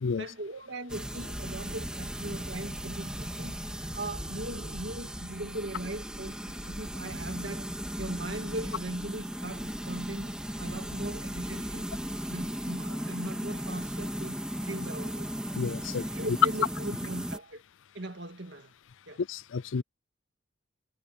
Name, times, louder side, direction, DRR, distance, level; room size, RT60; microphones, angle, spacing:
voice 1, 0.2-3.6 3.9-7.7 8.0-11.8 12.3-15.3 16.1-17.6 17.9-18.7 19.1-19.2, right 1 dB, 65° right, 2.1 m, -39 dB
sound 1, 0.9-17.4, equal, 5° right, 3.3 m, -36 dB
voice 2, 15.5-16.1 19.3-19.8, left 5 dB, 80° left, 0.4 m, -32 dB
head